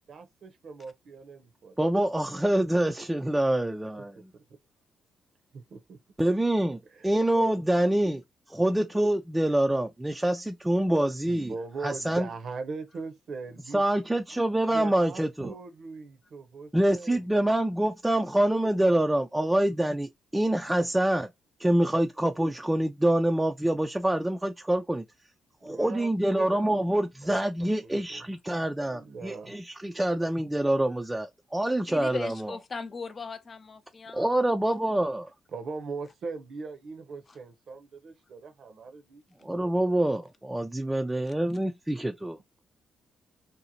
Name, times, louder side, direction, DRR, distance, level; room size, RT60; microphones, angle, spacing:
voice 1, 0.1-1.9 4.0-4.1 4.3-4.4 5.5-6.0 6.9-7.1 11.3-13.8 14.7-17.3 25.6-28.3 28.9-29.5 35.5-40.0, right 4 dB, 60° right, 0.7 m, -41 dB
voice 2, 1.8-4.2 6.2-8.2 8.5-11.5 11.8-12.3 13.7-15.5 16.7-21.3 21.6-25.0 25.6-32.5 34.1-35.3 39.4-42.3, right 1 dB, 10° right, 0.3 m, -26 dB
voice 3, 31.9-34.3, left 4 dB, 40° left, 0.5 m, -38 dB
2.7 x 2.1 x 2.7 m
supercardioid pair, 60°, 0 cm